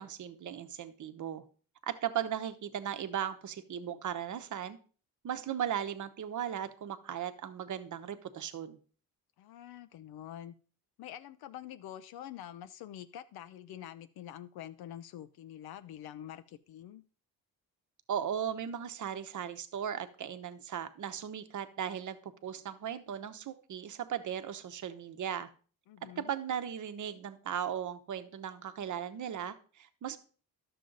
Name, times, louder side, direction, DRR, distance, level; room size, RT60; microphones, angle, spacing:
voice 1, 0.0-1.4 1.8-4.8 5.2-8.8 18.1-25.5 26.0-30.2, right 9 dB, 55° right, 11 dB, 0.9 m, -37 dB
voice 2, 9.4-10.5 11.0-17.0 25.9-26.3, left 11 dB, 85° left, 11 dB, 0.6 m, -46 dB
11.5 x 6.8 x 3.9 m, 0.41 s
cardioid pair, 120°, 36 cm